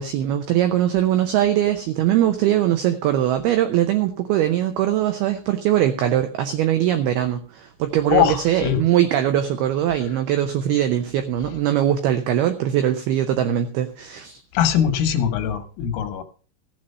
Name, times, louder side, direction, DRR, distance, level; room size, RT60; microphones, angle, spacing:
voice 1, 0.0-14.4, right 11 dB, 85° right, 2.2 m, -21 dB
voice 2, 8.1-8.8 14.5-16.2, left 9 dB, 90° left, 3.9 m, -21 dB
15.5 x 7.7 x 5.5 m
omnidirectional pair, 5.6 m